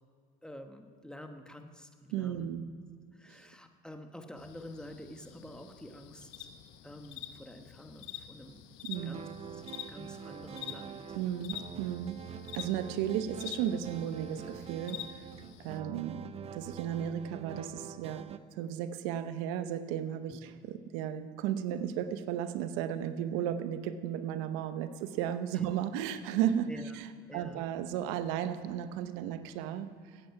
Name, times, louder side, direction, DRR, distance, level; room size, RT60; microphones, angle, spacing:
voice 1, 0.4-2.5 3.1-6.5 6.8-8.6 9.0-9.3 9.5-11.2 20.3-20.4 25.5-25.7 26.7-26.9 27.3-27.7, left 1 dB, 5° left, 6 dB, 1.3 m, -48 dB
voice 2, 2.1-2.6 3.3-3.5 8.8-9.2 11.1-15.3 15.6-16.3 16.5-30.2, right 10 dB, 80° right, 11 dB, 0.8 m, -34 dB
sound 1, 4.4-15.8, left 11 dB, 80° left, 1.0 m, -47 dB
sound 2, 8.9-18.4, right 8 dB, 35° right, 0.6 m, -45 dB
16.0 x 9.1 x 5.8 m, 2.1 s
supercardioid pair, 100°, 18 cm